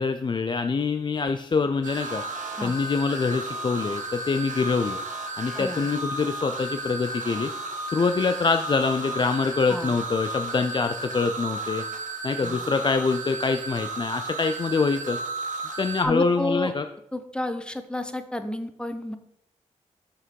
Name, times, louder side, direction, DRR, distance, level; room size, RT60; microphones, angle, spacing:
voice 1, 0.0-2.2 2.6-5.0 5.4-7.5 7.9-11.8 12.2-15.2 15.8-16.8, left 4 dB, 35° left, 7 dB, 0.4 m, -25 dB
sound 1, 1.8-16.0, right 2 dB, 80° right, 1.1 m, -34 dB
voice 2, 16.0-16.7 17.1-19.2, left 1 dB, 5° left, 9 dB, 0.7 m, -30 dB
6.4 x 6.0 x 4.5 m, 0.77 s
cardioid pair, 80°, 13 cm